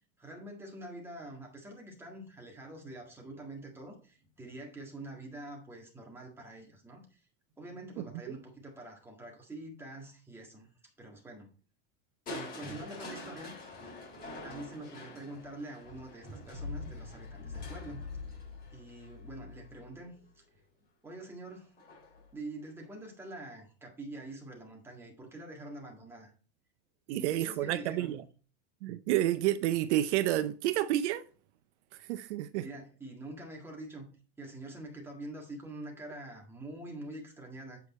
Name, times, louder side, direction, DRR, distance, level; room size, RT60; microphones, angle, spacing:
voice 1, 0.2-7.2 7.6-11.5 12.3-13.5 14.4-18.0 18.7-20.2 21.0-21.7 22.3-26.3 27.1-28.2 32.5-34.1 34.4-37.8, right 1 dB, 5° right, 1.7 m, -45 dB
Crushing, 12.3-20.2 21.8-22.3 22.8-22.9, left 3 dB, 25° left, 3.8 m, -44 dB
voice 2, 27.1-28.2 28.8-31.2 32.0-32.7, right 13 dB, 65° right, 0.6 m, -30 dB
8.1 x 4.9 x 4.2 m
supercardioid pair, 165°, 36 cm